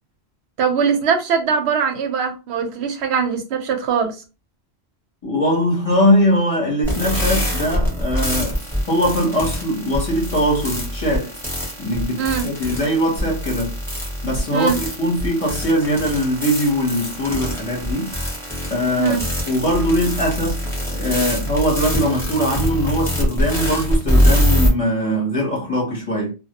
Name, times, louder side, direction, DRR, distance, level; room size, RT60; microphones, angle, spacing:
voice 1, 0.6-4.2 12.2-12.5 14.5-14.8 19.0-19.2, right 6 dB, 80° right, 0.9 m, -21 dB
voice 2, 5.2-8.6 8.9-11.4 11.8-13.7 14.2-18.2 18.7-19.2 19.5-26.3, equal, 35° left, 0.8 m, -21 dB
sound 1, 6.8-24.7, equal, 5° left, 0.8 m, -23 dB
2.1 x 2.1 x 2.8 m
omnidirectional pair, 1.1 m